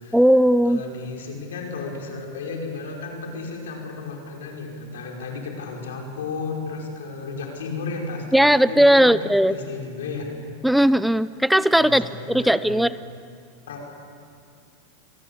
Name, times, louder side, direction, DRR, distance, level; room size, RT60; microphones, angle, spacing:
voice 1, 0.1-0.8 8.3-9.6 10.6-12.9, equal, ahead, 16 dB, 0.5 m, -17 dB
voice 2, 0.7-10.3 11.7-12.7 13.7-13.9, left 4 dB, 85° left, 1 dB, 5.4 m, -33 dB
26.5 x 18.5 x 8.6 m, 2.3 s
hypercardioid pair, 115°, 0 cm